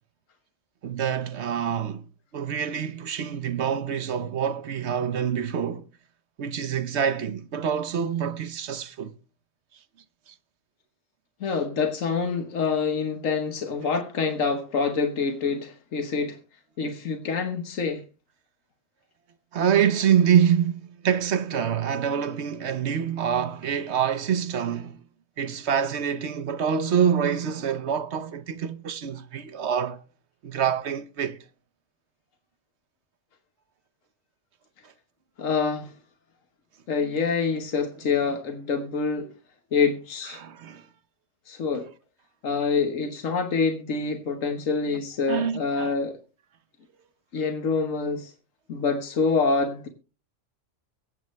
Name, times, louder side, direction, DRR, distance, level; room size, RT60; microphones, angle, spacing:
voice 1, 0.8-2.0 2.3-5.8 6.4-9.1 19.5-25.0 25.4-30.0 30.4-31.4 40.4-40.8 45.3-45.9, right 8 dB, 60° right, 1.0 m, -26 dB
voice 2, 11.4-16.4 16.8-18.0 35.4-35.9 36.9-39.3 39.7-40.4 41.5-41.9 42.4-46.2 47.3-48.3 48.7-49.9, left 4 dB, 85° left, 1.6 m, -26 dB
23.0 x 7.9 x 3.2 m
omnidirectional pair, 1.3 m